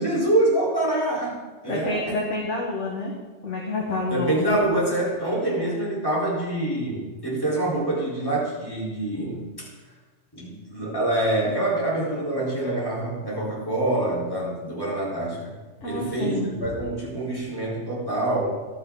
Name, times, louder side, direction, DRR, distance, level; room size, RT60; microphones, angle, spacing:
voice 1, 0.0-1.4 1.6-2.2 4.1-9.7 10.3-15.4 15.8-18.7, right 1 dB, 20° left, -6 dB, 4.3 m, -25 dB
voice 2, 1.6-3.1 3.4-4.6 15.8-16.5, left 2 dB, 85° left, -2 dB, 2.0 m, -28 dB
14.5 x 11.5 x 4.0 m, 1.3 s
omnidirectional pair, 1.2 m